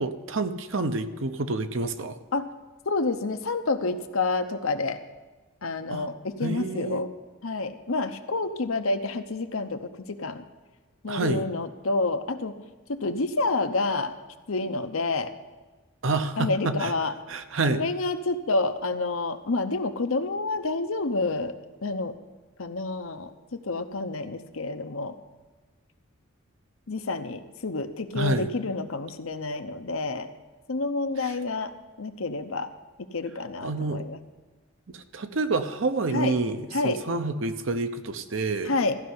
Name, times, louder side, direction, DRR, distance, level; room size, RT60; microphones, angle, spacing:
voice 1, 0.0-2.2 5.9-6.1 6.4-7.1 11.1-11.4 16.0-16.9 17.3-17.8 28.1-28.5 31.2-31.3 33.6-34.0 34.9-38.7, right 3 dB, 65° right, 9 dB, 0.8 m, -28 dB
voice 2, 2.9-5.0 5.6-7.1 7.4-10.4 11.0-12.6 12.9-14.2 14.5-15.3 16.4-17.1 17.7-22.1 22.6-23.3 23.6-25.2 26.9-30.3 30.7-31.7 32.0-32.7 33.0-34.2 36.1-36.3 36.7-37.0 38.6-39.0, left 3 dB, 75° left, 8 dB, 0.8 m, -28 dB
14.5 x 5.7 x 9.5 m, 1.2 s
head